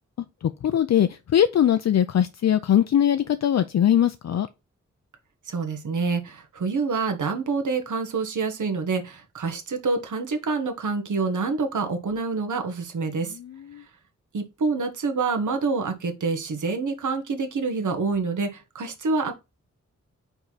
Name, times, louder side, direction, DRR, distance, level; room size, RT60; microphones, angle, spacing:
voice 1, 0.4-4.5 13.4-13.8, left 10 dB, 65° left, 0.5 m, -21 dB
voice 2, 5.5-13.4 14.3-19.3, right 4 dB, 90° right, 1.4 m, -27 dB
5.4 x 4.7 x 4.0 m
wide cardioid pair, 175°, 29 cm